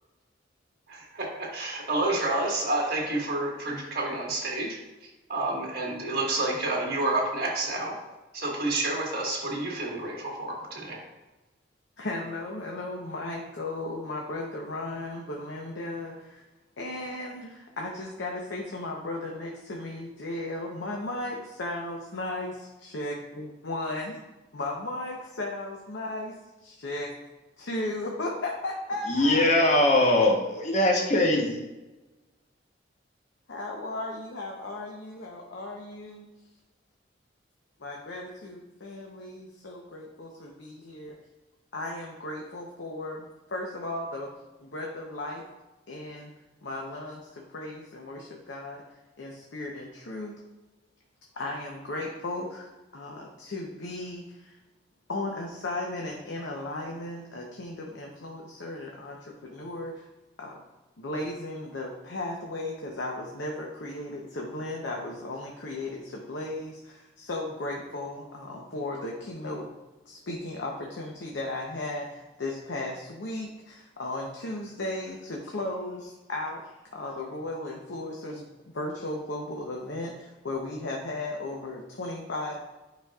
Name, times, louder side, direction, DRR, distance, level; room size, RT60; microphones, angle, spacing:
voice 1, 0.9-8.0 8.3-11.0, right 2 dB, 55° right, 1.6 m, -29 dB
voice 2, 12.0-16.4 16.8-24.2 24.5-26.3 26.6-27.1 27.6-30.3 33.5-36.3 37.8-41.2 41.7-44.3 44.6-45.4 45.9-46.3 46.6-48.8 49.2-50.3 51.3-54.6 55.1-60.1 60.4-60.6 61.0-69.7 70.1-76.6 76.9-78.5 78.7-82.7, left 2 dB, 85° left, 0.8 m, -35 dB
voice 3, 29.1-31.6, left 1 dB, 40° left, 0.9 m, -21 dB
8.9 x 5.1 x 2.3 m
head